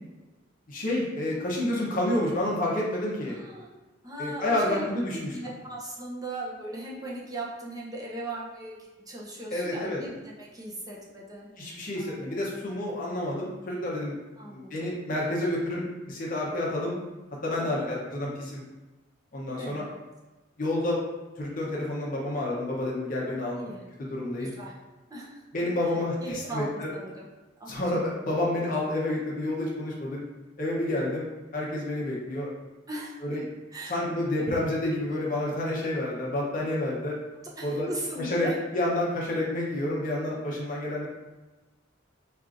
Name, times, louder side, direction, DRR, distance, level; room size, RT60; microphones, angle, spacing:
voice 1, 0.7-3.4 4.2-5.5 9.5-10.0 11.6-14.1 14.5-17.0 17.4-18.6 19.3-19.8 20.6-21.0 21.4-23.6 24.1-24.5 25.5-26.9 27.7-30.2 30.6-31.3 31.5-32.5 33.2-33.4 33.9-37.2 37.6-37.9 38.2-38.5 38.7-41.1, left 1 dB, 45° left, -4 dB, 0.7 m, -29 dB
voice 2, 3.3-3.7 4.0-8.7 9.1-11.5 11.9-12.3 14.4-15.0 17.6-18.0 19.6-19.9 23.3-23.8 24.4-24.7 25.1-25.4 26.2-27.2 27.6-27.8 28.2-28.3 32.9-33.2 33.7-34.0 37.6-38.6, right 1 dB, 20° right, -4 dB, 0.6 m, -38 dB
4.4 x 2.4 x 2.5 m, 1.2 s
head